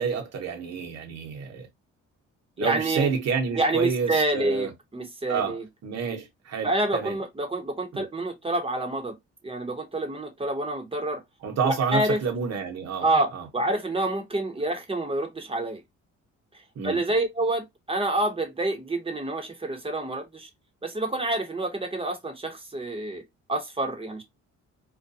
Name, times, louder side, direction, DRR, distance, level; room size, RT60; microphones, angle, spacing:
voice 1, 0.0-1.7 2.6-4.7 5.3-7.2 7.9-8.0 11.4-13.1 13.3-13.5 16.8-17.0, right 6 dB, 60° right, 1.0 m, -29 dB
voice 2, 2.6-3.1 3.5-5.6 6.6-9.2 9.4-11.2 11.6-12.2 13.0-15.8 16.8-20.5 20.8-23.2 23.5-24.2, right 2 dB, 20° right, 0.9 m, -27 dB
2.4 x 2.2 x 2.6 m
cardioid pair, 90°, 30 cm